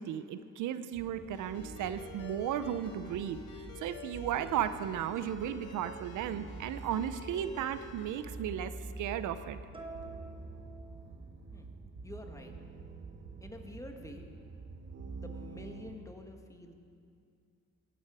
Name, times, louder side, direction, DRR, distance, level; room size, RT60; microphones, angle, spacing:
voice 1, 0.0-3.4 3.8-9.6, right 10 dB, 80° right, 12 dB, 0.6 m, -35 dB
sound 1, 0.9-15.9, right 3 dB, 40° right, 1.2 m, -47 dB
Ringtone, 1.3-8.2, left 3 dB, 75° left, 2.1 m, -50 dB
sound 2, 9.7-11.5, right 2 dB, 15° right, 1.5 m, -49 dB
voice 2, 12.0-12.5 13.4-14.3 15.1-16.7, left 1 dB, 10° left, 4 dB, 1.4 m, -48 dB
16.0 x 11.0 x 4.8 m, 2.4 s
cardioid pair, 90°, 30 cm